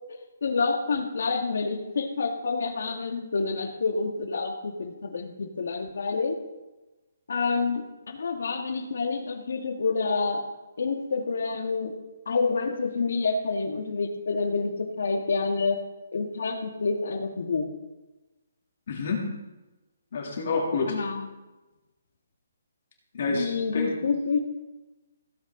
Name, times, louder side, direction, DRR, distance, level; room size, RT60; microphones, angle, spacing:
voice 1, 0.1-6.3 7.3-10.4 10.8-12.0 12.2-15.8 16.1-17.7 20.8-21.3 23.3-24.4, left 4 dB, 65° left, 5 dB, 1.7 m, -28 dB
voice 2, 18.9-19.3 20.1-21.0 23.1-23.9, left 4 dB, 45° left, -2 dB, 2.8 m, -28 dB
16.0 x 8.8 x 3.8 m, 1.1 s
hypercardioid pair, 175°, 0 cm